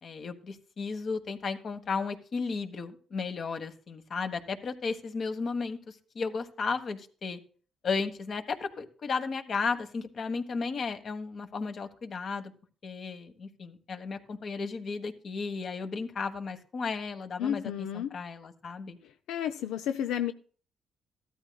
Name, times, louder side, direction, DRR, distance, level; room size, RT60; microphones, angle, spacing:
voice 1, 0.0-7.4 7.8-12.5 12.8-19.0, left 4 dB, 50° left, 1.4 m, -34 dB
voice 2, 17.4-18.1 19.3-20.3, left 10 dB, 90° left, 0.5 m, -31 dB
15.0 x 13.0 x 2.3 m
cardioid pair, 90°, 0 cm